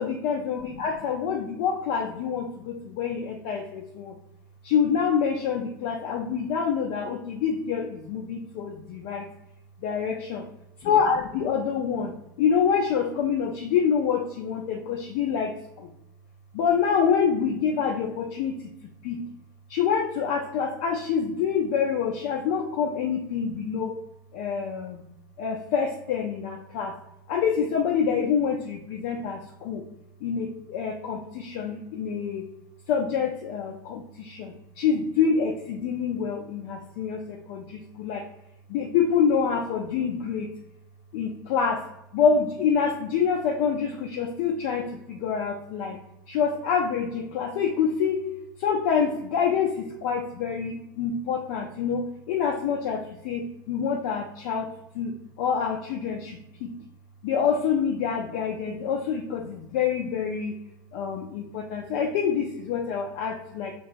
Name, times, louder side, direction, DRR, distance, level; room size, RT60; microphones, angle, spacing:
voice 1, 0.0-4.1 4.6-9.3 9.8-10.4 10.8-15.9 16.5-18.6 19.0-19.2 19.7-24.0 24.3-25.0 25.4-26.9 27.3-29.8 30.2-32.5 32.9-38.2 38.7-40.5 41.1-41.8 42.1-46.0 46.3-48.2 48.6-54.7 54.9-56.7 57.2-60.6 60.9-63.7, left 6 dB, 55° left, 1 dB, 0.3 m, -26 dB
2.8 x 2.2 x 2.5 m, 0.84 s
figure-of-eight pair, 80°, 11 cm